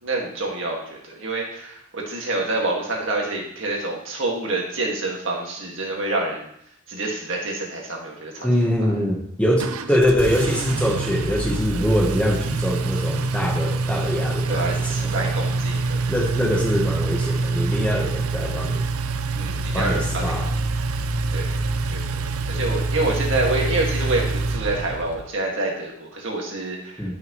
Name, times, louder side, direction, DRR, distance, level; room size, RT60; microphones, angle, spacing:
voice 1, 0.0-6.5 6.9-8.5 11.8-12.0 14.5-16.2 19.4-20.3 21.3-21.6 21.9-27.1, right 2 dB, 55° right, -1 dB, 1.9 m, -27 dB
voice 2, 8.4-15.3 16.1-18.8 19.7-20.5 27.0-27.1, equal, 5° left, -2 dB, 1.0 m, -23 dB
Engine, 9.6-25.3, right 3 dB, 75° right, 0.5 m, -25 dB
12.0 x 6.0 x 3.1 m, 0.71 s
head